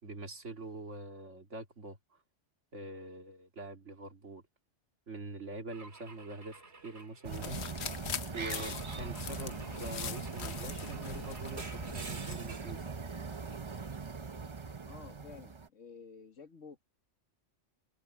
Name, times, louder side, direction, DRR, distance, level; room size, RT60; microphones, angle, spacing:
voice 1, 0.0-2.2 2.7-4.4 5.1-7.6 8.3-12.9, right 2 dB, 75° right, 2.9 m, -44 dB
Car / Engine / Glass, 5.7-7.9 8.6-12.8, right 3 dB, 60° right, 2.7 m, -51 dB
sound 1, 7.2-15.7, right 4 dB, 30° right, 0.8 m, -41 dB
sound 2, 7.3-12.4, left 8 dB, 60° left, 1.1 m, -43 dB
voice 2, 14.8-16.8, left 5 dB, 80° left, 2.0 m, -51 dB
omnidirectional pair, 1.3 m